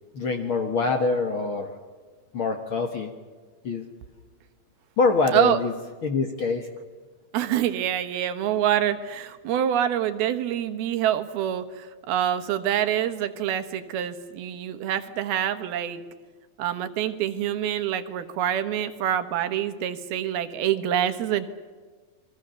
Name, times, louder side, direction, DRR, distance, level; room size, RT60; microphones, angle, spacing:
voice 1, 0.1-1.7 2.3-3.1 3.6-3.8 5.0-5.7 6.0-6.7, left 4 dB, 55° left, 5 dB, 1.6 m, -24 dB
voice 2, 7.3-16.0 16.6-21.5, right 10 dB, 90° right, 9 dB, 3.3 m, -26 dB
29.0 x 22.5 x 6.9 m, 1.4 s
omnidirectional pair, 4.3 m